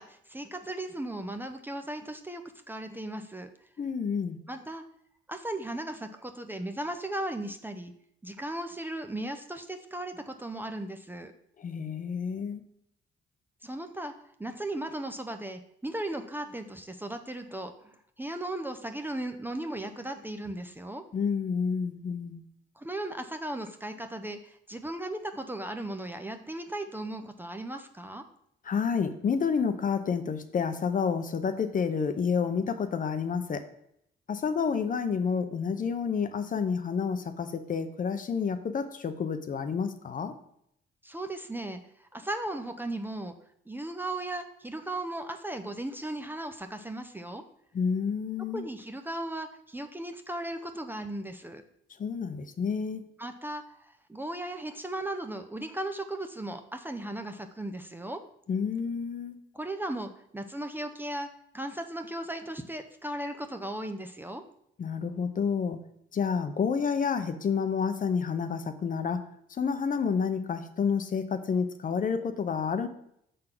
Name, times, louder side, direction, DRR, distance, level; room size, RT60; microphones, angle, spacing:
voice 1, 0.0-2.4 2.7-3.5 4.5-4.8 5.3-7.9 8.2-11.3 13.6-14.1 14.4-21.0 22.8-28.2 41.0-43.3 43.7-47.4 48.5-51.6 53.2-58.2 59.5-61.3 61.5-64.4, right 1 dB, 10° right, 6 dB, 0.6 m, -36 dB
voice 2, 3.8-4.4 11.6-12.6 21.1-22.4 28.6-33.6 34.3-40.3 47.7-48.7 52.0-53.1 58.5-59.3 64.8-65.8 66.1-69.2 69.5-72.9, left 6 dB, 40° left, 9 dB, 0.7 m, -29 dB
6.4 x 3.9 x 5.9 m, 0.73 s
cardioid pair, 90°, 20 cm